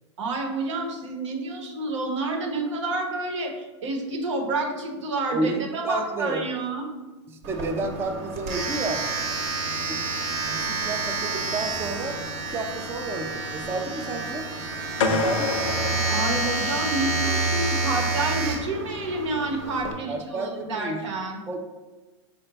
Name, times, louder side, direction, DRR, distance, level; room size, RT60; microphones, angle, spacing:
voice 1, 0.2-6.8 14.9-15.0 16.1-21.4, right 2 dB, 80° right, 2 dB, 0.9 m, -29 dB
voice 2, 5.3-6.5 7.3-9.1 9.9-10.0 10.5-14.5 15.1-15.7 17.0-17.2 20.1-21.0 21.5-21.6, right 3 dB, 15° right, 3 dB, 0.3 m, -31 dB
Domestic sounds home sounds, 7.4-19.9, right 3 dB, 45° right, 0.9 m, -29 dB
sound 1, 15.0-17.1, left 4 dB, 80° left, 0.5 m, -28 dB
5.0 x 2.2 x 3.9 m, 1.2 s
hypercardioid pair, 120°, 16 cm